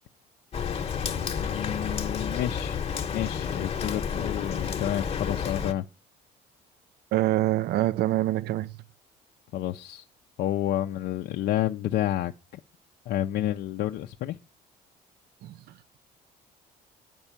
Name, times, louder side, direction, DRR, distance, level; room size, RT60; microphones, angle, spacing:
Rain, 0.5-5.7, left 7 dB, 35° left, 1.0 m, -30 dB
voice 1, 1.3-2.8 3.1-5.9 9.5-10.1 10.4-12.3 13.1-14.4, left 12 dB, 70° left, 0.5 m, -29 dB
voice 2, 7.1-8.7 15.4-15.6, right 15 dB, 70° right, 0.5 m, -25 dB
9.0 x 5.4 x 7.1 m
cardioid pair, 110°, 17 cm